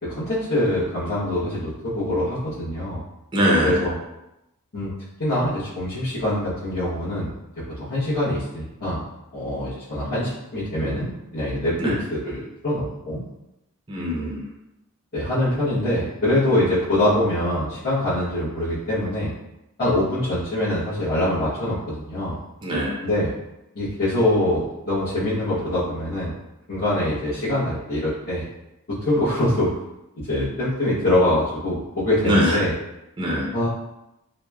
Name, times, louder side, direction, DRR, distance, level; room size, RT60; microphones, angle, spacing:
voice 1, 0.0-3.0 3.6-3.9 4.7-4.9 5.2-7.3 7.8-9.0 9.3-13.2 14.2-14.3 15.1-19.3 19.8-22.4 23.0-23.3 23.7-26.3 26.7-28.4 28.9-29.7 30.2-32.7 33.5-33.7, left 1 dB, 45° left, -14 dB, 0.9 m, -24 dB
voice 2, 3.3-3.8 11.8-11.9 13.9-14.4 22.6-23.0 32.2-32.6 33.2-33.5, equal, 20° right, -4 dB, 0.5 m, -22 dB
3.0 x 2.0 x 2.2 m, 0.90 s
head